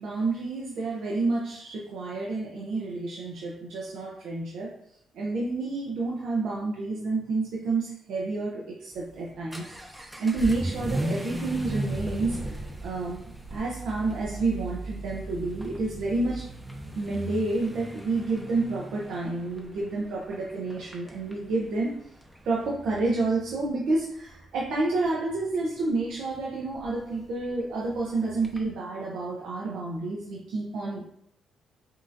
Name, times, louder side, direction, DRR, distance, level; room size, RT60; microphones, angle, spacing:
voice 1, 0.0-4.7 5.1-9.6 10.2-13.2 13.5-16.4 17.0-21.9 22.4-31.0, right 3 dB, 75° right, -4 dB, 0.7 m, -29 dB
Vehicle / Accelerating revving vroom, 8.9-28.7, right 1 dB, 5° right, 0.6 m, -38 dB
5.3 x 2.6 x 2.7 m, 0.74 s
cardioid pair, 90°, 0 cm